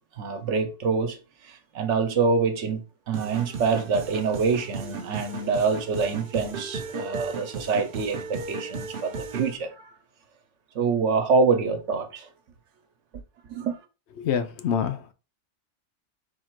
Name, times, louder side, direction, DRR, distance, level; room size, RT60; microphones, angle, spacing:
voice 1, 0.2-1.2 1.4-9.9 10.7-12.3 13.5-13.8, right 4 dB, 75° right, 1.1 m, -26 dB
sound 1, 3.1-9.5, right 4 dB, 55° right, 0.8 m, -35 dB
voice 2, 14.2-15.1, left 8 dB, 65° left, 0.9 m, -26 dB
4.3 x 2.4 x 4.4 m
omnidirectional pair, 1.3 m